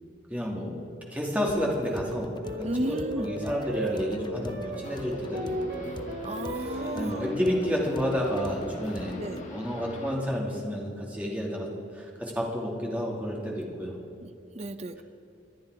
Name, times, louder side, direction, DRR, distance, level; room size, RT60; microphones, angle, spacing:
voice 1, 0.3-0.7 1.1-2.3 2.6-5.9 6.7-9.2 9.5-13.9, equal, 10° right, -2 dB, 2.5 m, -30 dB
sound 1, 1.5-9.5, left 1 dB, 25° left, 0.6 m, -44 dB
sound 2, 2.4-11.1, right 1 dB, 60° right, 2.5 m, -37 dB
voice 2, 2.6-3.3 6.2-7.3 9.2-9.4 14.2-14.3 14.5-15.0, right 1 dB, 35° right, 9 dB, 0.7 m, -33 dB
sound 3, 4.8-10.2, left 1 dB, 40° left, 1.8 m, -44 dB
25.0 x 9.6 x 4.9 m, 2.7 s
head